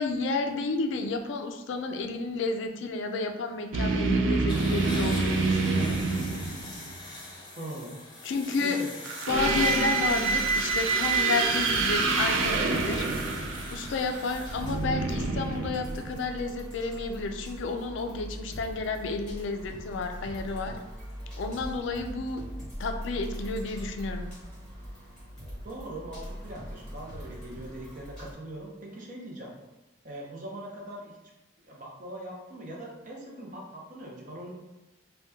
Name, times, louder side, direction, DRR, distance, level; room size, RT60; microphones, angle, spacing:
voice 1, 0.0-6.0 8.2-8.8 9.3-13.3 13.7-20.7 21.4-22.4 22.8-24.3, left 3 dB, 70° left, 5 dB, 0.3 m, -31 dB
sound 1, 3.7-7.0 9.0-16.4, right 3 dB, 85° right, 0.4 m, -27 dB
sound 2, 4.5-14.7, left 2 dB, 25° left, 0.5 m, -43 dB
voice 2, 7.6-8.0 8.6-9.0 9.4-9.7 25.6-29.5 30.0-31.2 31.6-34.5, right 1 dB, 40° right, -2 dB, 0.6 m, -41 dB
sound 3, 9.3-28.3, equal, 5° left, 1.2 m, -41 dB
2.7 x 2.2 x 3.4 m, 1.0 s
head